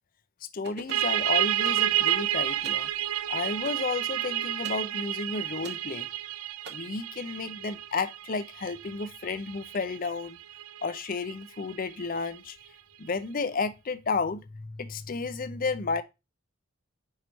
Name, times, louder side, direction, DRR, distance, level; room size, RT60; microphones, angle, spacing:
voice 1, 0.4-2.9 3.3-6.1 6.7-10.4 10.8-12.6 13.0-16.0, left 4 dB, 40° left, 0.5 m, -32 dB
sound 1, 0.6-1.1 1.6-2.3 2.6-2.9 3.6-3.9 4.6-4.9 5.6-5.9 6.6-6.7, right 2 dB, 50° right, 1.0 m, -44 dB
sound 2, 0.9-12.3, right 13 dB, 80° right, 0.4 m, -30 dB
4.7 x 4.5 x 5.1 m
head